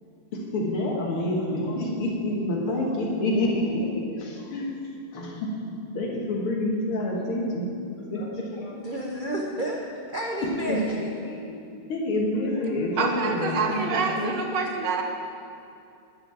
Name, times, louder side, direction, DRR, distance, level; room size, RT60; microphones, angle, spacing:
voice 1, 0.3-4.7 5.1-5.5 5.9-8.7 10.4-11.0 11.3-11.6 11.9-14.3, left 1 dB, 90° left, -2 dB, 2.5 m, -28 dB
voice 2, 8.7-11.1, right 1 dB, 75° right, -1 dB, 0.4 m, -31 dB
voice 3, 13.0-15.0, right 5 dB, 60° right, 2 dB, 1.6 m, -27 dB
11.5 x 5.0 x 8.5 m, 2.6 s
omnidirectional pair, 2.3 m